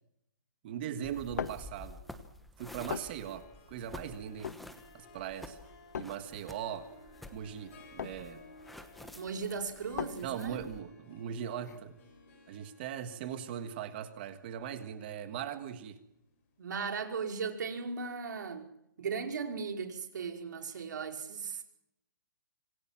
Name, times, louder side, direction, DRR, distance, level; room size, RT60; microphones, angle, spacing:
voice 1, 0.6-2.0 2.6-4.5 4.9-5.6 6.0-6.9 7.3-8.4 10.2-12.0 12.5-16.0, right 9 dB, 30° right, 9 dB, 1.6 m, -40 dB
sound 1, 1.0-12.5, left 8 dB, 50° left, 1.2 m, -44 dB
sound 2, 1.0-10.8, left 1 dB, ahead, 1.1 m, -51 dB
Harp, 2.8-16.4, left 3 dB, 35° left, 7.6 m, -58 dB
voice 2, 9.2-10.6 16.6-18.7 19.0-21.6, right 5 dB, 60° right, 4 dB, 5.2 m, -37 dB
27.0 x 20.5 x 7.5 m, 0.80 s
hypercardioid pair, 175°, 11 cm